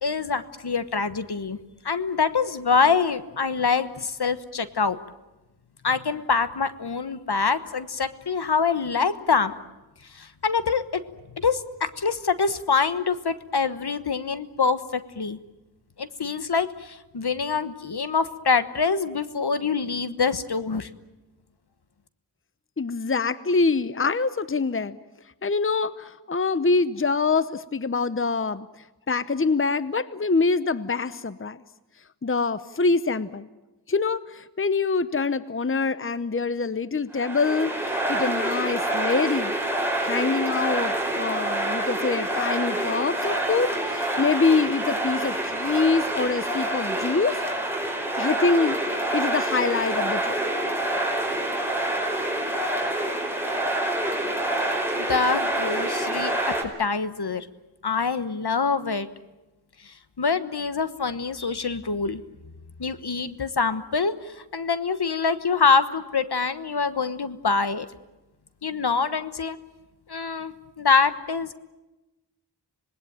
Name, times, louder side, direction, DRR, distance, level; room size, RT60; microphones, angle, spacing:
voice 1, 0.0-1.6 1.8-5.0 5.8-9.5 10.1-11.0 11.4-14.8 15.1-15.4 16.0-20.9 54.7-57.5 57.8-59.1 59.8-62.2 62.8-67.9 68.6-69.6 70.1-71.5, left 5 dB, 70° left, 12 dB, 1.3 m, -25 dB
voice 2, 22.8-25.0 25.4-28.7 29.1-31.6 32.2-33.5 33.9-39.5 40.0-47.4 48.2-50.4, left 4 dB, 30° left, 15 dB, 0.9 m, -25 dB
sound 1, 37.1-56.6, right 1 dB, 5° right, 4.8 m, -27 dB
26.0 x 20.0 x 9.0 m, 1.0 s
wide cardioid pair, 60°, 41 cm